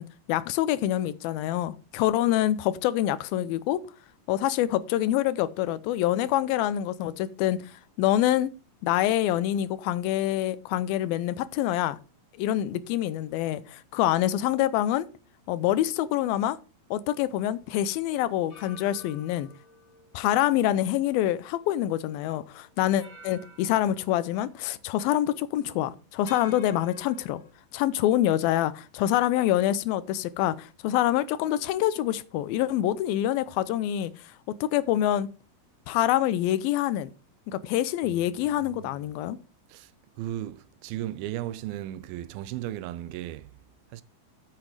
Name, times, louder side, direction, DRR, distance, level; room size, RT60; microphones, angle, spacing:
voice 1, 0.0-3.8 4.3-7.6 8.0-8.5 8.8-12.0 12.4-15.1 15.5-16.6 16.9-19.5 20.1-27.4 27.7-34.1 34.6-35.3 35.9-37.1 37.5-39.4, left 13 dB, 90° left, 2.5 m, -26 dB
sound 1, 18.5-21.9 22.3-22.4 23.0-24.8 25.2-25.4 26.3-27.5, left 3 dB, 45° left, 4.0 m, -51 dB
voice 2, 38.6-39.0 39.7-39.9 40.2-43.5 43.9-44.0, right 13 dB, 85° right, 2.5 m, -36 dB
9.0 x 7.5 x 4.8 m
omnidirectional pair, 4.2 m